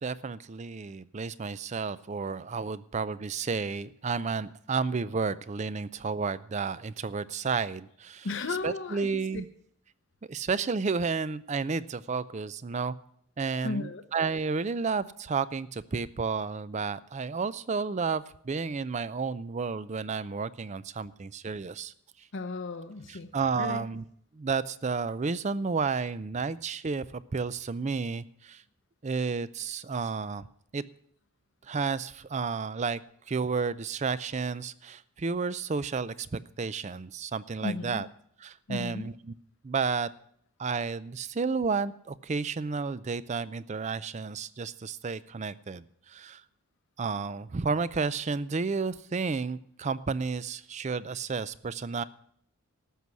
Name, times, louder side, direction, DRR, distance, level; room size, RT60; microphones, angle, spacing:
voice 1, 0.0-8.3 8.6-9.5 10.3-12.9 13.4-21.9 23.1-24.0 24.3-28.6 29.0-30.4 30.7-30.8 31.7-33.0 33.3-38.1 38.4-39.4 39.6-40.1 40.6-46.4 47.0-52.0, right 4 dB, 35° right, 17 dB, 0.4 m, -31 dB
voice 2, 8.2-9.1 13.6-14.0 22.3-23.3 23.6-23.8 37.6-38.1 38.7-39.1, left 3 dB, 60° left, 7 dB, 0.8 m, -34 dB
13.5 x 6.2 x 9.5 m, 0.66 s
head